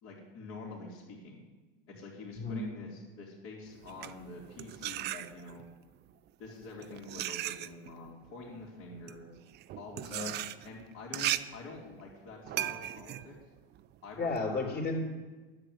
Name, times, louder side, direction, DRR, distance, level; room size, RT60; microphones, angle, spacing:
voice 1, 0.0-1.4 1.9-5.6 6.4-9.3 9.8-10.3 10.6-13.3 14.0-14.8, left 3 dB, 50° left, -7 dB, 3.2 m, -46 dB
voice 2, 2.3-2.7 10.1-10.3 14.2-15.0, left 3 dB, 35° left, 1 dB, 3.4 m, -33 dB
sound 1, 3.8-5.7 6.5-14.4, right 13 dB, 35° right, 0.5 m, -38 dB
10.5 x 7.9 x 8.1 m, 1.2 s
hypercardioid pair, 105°, 29 cm